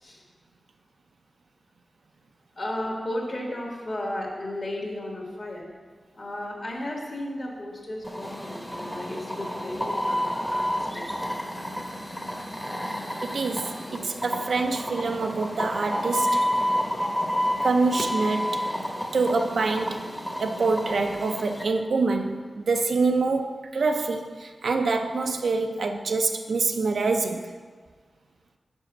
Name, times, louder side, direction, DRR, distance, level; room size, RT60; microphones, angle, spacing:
voice 1, 2.5-5.7 6.1-11.0 12.8-13.0 16.9-17.2, left 1 dB, 50° left, -1 dB, 1.6 m, -34 dB
sound 1, 8.0-21.6, equal, 5° left, 0.8 m, -30 dB
voice 2, 13.2-16.5 17.6-18.7 19.1-20.1 20.4-27.5, right 3 dB, 80° right, 5 dB, 0.5 m, -26 dB
5.4 x 5.2 x 5.9 m, 1.5 s
wide cardioid pair, 70°, 0 cm